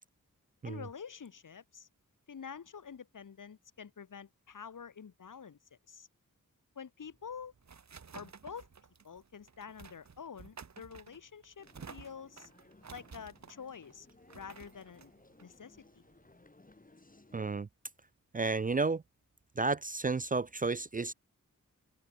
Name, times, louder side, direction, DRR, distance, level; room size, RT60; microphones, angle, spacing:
voice 1, 0.6-1.9 2.3-6.1 6.7-7.5 8.1-8.7 9.0-12.5 12.9-14.1 14.3-15.1 15.4-16.0, left 6 dB, 75° left, 1.7 m, -48 dB
sound 1, 7.0-16.3, right 6 dB, 55° right, 1.6 m, -54 dB
sound 2, 11.6-17.6, left 2 dB, 25° left, 5.8 m, -61 dB
voice 2, 17.3-17.7 18.3-19.0 19.6-21.1, right 3 dB, 25° right, 0.4 m, -32 dB
open air
wide cardioid pair, 105°, 32 cm